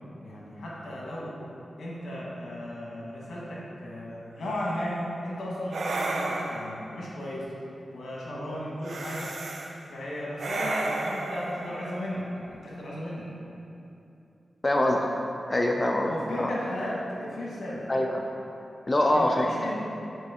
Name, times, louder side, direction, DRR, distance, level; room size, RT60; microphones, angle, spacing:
voice 1, 0.2-1.4 1.8-7.5 7.9-9.3 9.9-13.3 15.9-17.8 19.0-19.7, left 1 dB, 80° left, -5 dB, 1.4 m, -35 dB
sound 1, 4.5-4.8 5.7-6.9 8.8-9.7 10.4-12.6, right 2 dB, 75° right, 0.5 m, -33 dB
voice 2, 14.6-15.1 15.5-16.1 16.4-16.5 17.9-18.2 18.9-19.5, left 1 dB, 25° left, 1 dB, 0.4 m, -24 dB
6.2 x 4.4 x 3.6 m, 2.7 s
cardioid pair, 65°, 0 cm